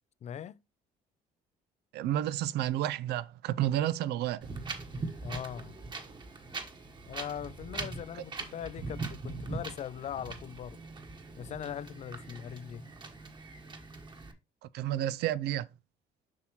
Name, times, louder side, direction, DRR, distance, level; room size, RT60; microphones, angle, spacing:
voice 1, 0.2-0.6 5.2-5.8 7.1-10.8 11.4-12.9, left 9 dB, 40° left, 0.4 m, -40 dB
voice 2, 1.9-4.5 14.7-15.7, right 12 dB, 75° right, 0.5 m, -30 dB
Wind, 4.4-14.3, right 3 dB, 25° right, 1.2 m, -41 dB
7.3 x 5.8 x 3.0 m
cardioid pair, 110°, 17 cm